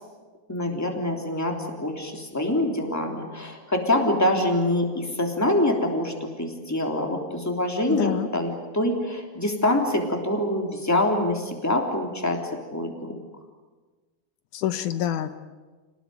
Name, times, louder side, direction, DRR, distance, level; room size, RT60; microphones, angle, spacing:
voice 1, 0.5-1.5 1.8-6.1 6.4-12.4 12.7-12.9, left 1 dB, 5° left, 2 dB, 3.1 m, -25 dB
voice 2, 7.9-8.3 14.5-15.4, left 11 dB, 80° left, 11 dB, 2.4 m, -27 dB
28.0 x 19.0 x 9.4 m, 1.3 s
omnidirectional pair, 3.5 m